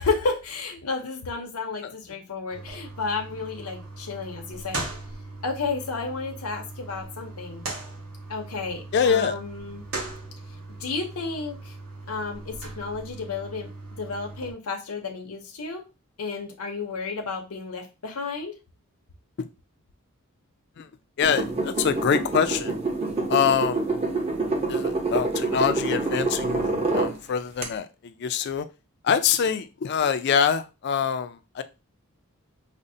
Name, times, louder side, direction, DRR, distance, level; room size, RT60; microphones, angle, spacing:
voice 1, 0.0-4.9 5.4-7.6 8.3-9.8 10.8-11.7 12.1-13.7 14.0-15.8 16.2-18.5, left 4 dB, 85° left, 0.7 m, -32 dB
sound 1, 2.5-14.5, right 2 dB, 70° right, 1.1 m, -39 dB
voice 2, 8.9-9.4 19.4-19.5 20.8-20.9 21.2-22.8 23.3-23.8 24.7-28.7 29.0-31.6, left 7 dB, 50° left, 0.3 m, -25 dB
sound 2, 21.2-27.1 27.6-27.7, right 2 dB, 30° right, 0.7 m, -26 dB
5.1 x 2.0 x 2.6 m
head